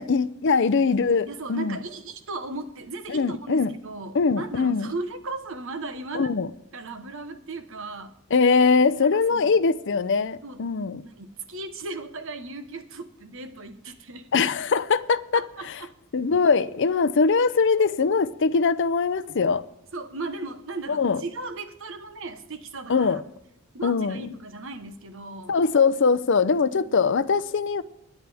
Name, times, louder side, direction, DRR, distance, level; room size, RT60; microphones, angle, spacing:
voice 1, 0.0-1.8 3.1-3.7 4.1-4.9 6.1-6.5 8.3-11.0 14.3-15.4 16.1-19.6 20.9-21.2 22.9-23.2 23.8-24.3 25.5-27.8, left 5 dB, 55° left, 0.5 m, -22 dB
voice 2, 1.3-6.3 6.7-8.2 9.0-9.5 10.4-10.6 11.0-14.3 15.3-15.9 17.8-17.9 19.9-23.2 23.7-25.6 26.7-27.0, right 3 dB, 65° right, 1.1 m, -37 dB
21.5 x 9.2 x 3.5 m
head